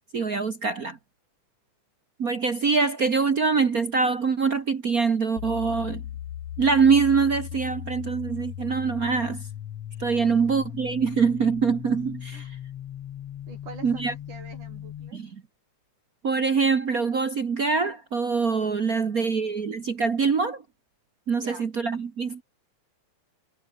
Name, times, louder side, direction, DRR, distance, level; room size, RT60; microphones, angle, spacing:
voice 1, 0.1-1.0 2.2-6.0 6.6-9.4 10.0-12.6 13.8-14.1 15.1-15.4 16.2-20.6 21.3-22.4, right 5 dB, 50° right, 1.1 m, -24 dB
sound 1, 5.4-15.1, left 11 dB, 60° left, 2.2 m, -37 dB
voice 2, 10.2-10.5 12.3-12.5 13.5-15.2 18.8-19.5 21.3-21.7, right 4 dB, 85° right, 8.4 m, -46 dB
omnidirectional pair, 3.5 m